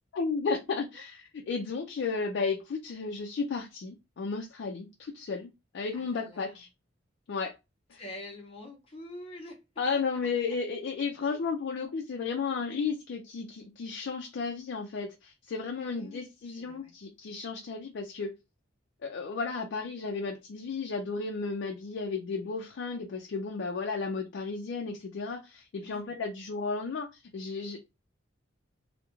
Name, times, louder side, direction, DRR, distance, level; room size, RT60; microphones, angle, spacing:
voice 1, 0.1-6.7 7.3-7.5 7.9-8.0 9.8-18.3 19.0-27.8, left 4 dB, 65° left, 0.4 m, -33 dB
voice 2, 5.9-6.6 7.9-9.6 11.1-11.5 15.8-16.9 25.8-26.1, left 1 dB, 30° left, 0.7 m, -46 dB
2.3 x 2.1 x 3.0 m
head